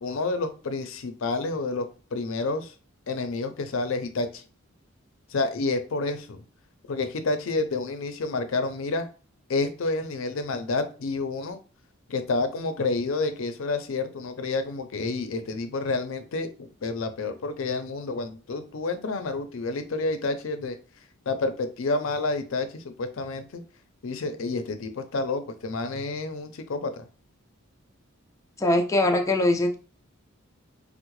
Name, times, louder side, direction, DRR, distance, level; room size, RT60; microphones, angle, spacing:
voice 1, 0.0-2.7 3.1-4.4 5.3-6.4 6.9-9.1 9.5-11.6 12.1-20.8 21.3-23.6 24.0-27.1, left 3 dB, 70° left, 9 dB, 0.5 m, -29 dB
voice 2, 28.6-29.8, left 1 dB, 15° left, 2 dB, 0.3 m, -22 dB
3.6 x 2.0 x 3.0 m, 0.36 s
head